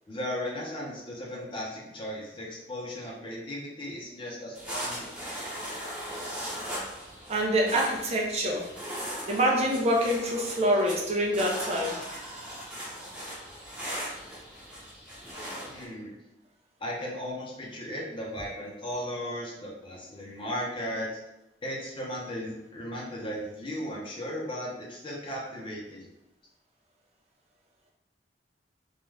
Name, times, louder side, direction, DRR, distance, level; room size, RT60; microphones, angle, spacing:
voice 1, 0.1-5.1 15.6-16.1 16.8-21.1 21.6-26.1, equal, 30° left, -4 dB, 0.7 m, -36 dB
sound 1, 4.5-15.9, equal, 5° right, 0.8 m, -39 dB
voice 2, 7.3-8.7 9.3-12.0, equal, 35° right, -1 dB, 0.5 m, -26 dB
2.4 x 2.3 x 3.2 m, 0.90 s
head